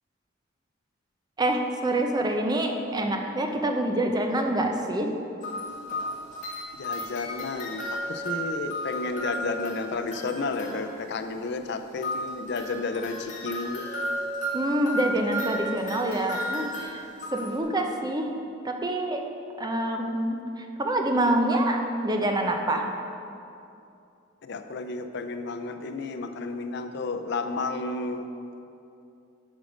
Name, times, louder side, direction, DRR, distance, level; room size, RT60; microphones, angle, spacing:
voice 1, 1.4-5.1 14.5-17.0 17.3-18.3 18.6-19.3 19.6-20.4 20.8-22.8, right 1 dB, 20° right, 3 dB, 0.7 m, -26 dB
sound 1, 5.4-11.1 12.0-17.6, equal, 40° left, 1.8 m, -34 dB
voice 2, 6.7-13.9 24.4-28.3, left 3 dB, 60° left, 7 dB, 0.5 m, -32 dB
8.2 x 6.4 x 5.2 m, 2.7 s
head